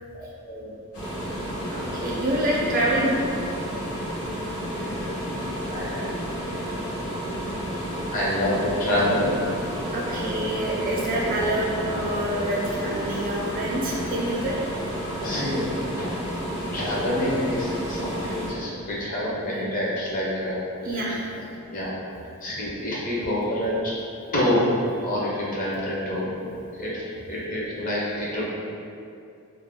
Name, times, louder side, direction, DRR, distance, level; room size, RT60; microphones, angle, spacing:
voice 1, 0.1-0.7 4.8-4.9 5.7-6.1 8.1-9.3 14.3-14.4 15.2-16.1 16.7-20.6 20.9-21.9 22.4-23.9 24.3-24.6 25.0-26.3 26.7-28.4, left 1 dB, 35° left, -6 dB, 0.5 m, -27 dB
sound 1, 0.9-18.5, equal, 80° left, 0.8 m, -31 dB
voice 2, 1.7-3.1 9.9-14.6 16.9-17.1 20.8-21.2, right 1 dB, 40° right, -4 dB, 0.4 m, -26 dB
2.4 x 2.1 x 3.3 m, 2.6 s
head